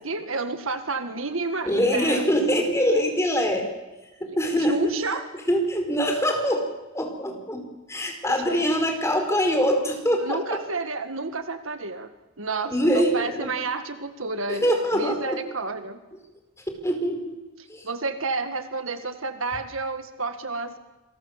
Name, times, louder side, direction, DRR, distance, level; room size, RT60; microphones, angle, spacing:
voice 1, 0.0-2.2 4.2-4.4 4.7-5.2 8.3-8.6 10.2-12.1 12.4-16.0 17.8-20.8, right 3 dB, 70° right, 9 dB, 1.8 m, -30 dB
voice 2, 1.6-3.6 4.2-4.9 5.5-6.7 6.9-10.6 12.7-13.5 14.5-15.4 16.8-17.4 17.7-17.8, equal, 15° left, 4 dB, 4.8 m, -24 dB
27.5 x 23.0 x 7.3 m, 1.1 s
head